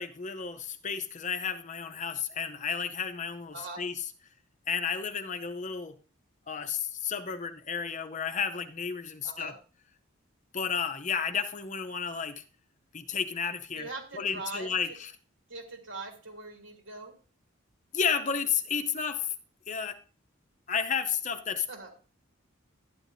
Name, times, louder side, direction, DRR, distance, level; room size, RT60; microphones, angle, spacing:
voice 1, 0.0-3.9 4.7-6.0 6.5-9.5 10.5-12.4 12.9-15.1 17.9-19.3 19.7-20.0 20.7-21.7, left 6 dB, 35° left, 0.6 m, -32 dB
voice 2, 9.2-9.6 13.7-14.7 15.5-17.1 21.7-21.9, right 3 dB, 75° right, 2.6 m, -41 dB
12.0 x 10.0 x 2.6 m
head